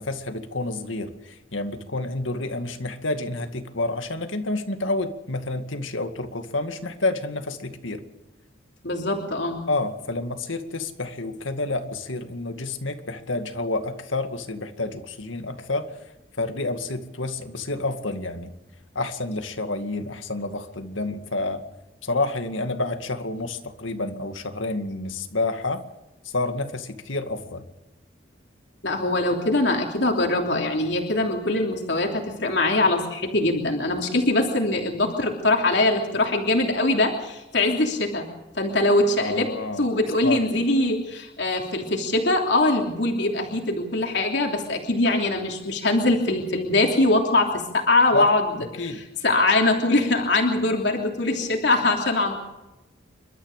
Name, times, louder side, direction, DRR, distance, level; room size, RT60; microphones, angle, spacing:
voice 1, 0.0-8.0 9.7-15.9 16.4-18.5 18.9-21.6 22.0-25.8 26.2-27.6 39.2-39.8 40.2-40.4 48.1-48.3 48.8-49.0, left 2 dB, 85° left, 7 dB, 2.3 m, -29 dB
voice 2, 8.8-9.6 28.8-38.3 38.5-39.5 39.8-48.4 48.8-52.4, left 2 dB, 60° left, 1 dB, 3.1 m, -22 dB
29.0 x 13.0 x 6.7 m, 1.0 s
head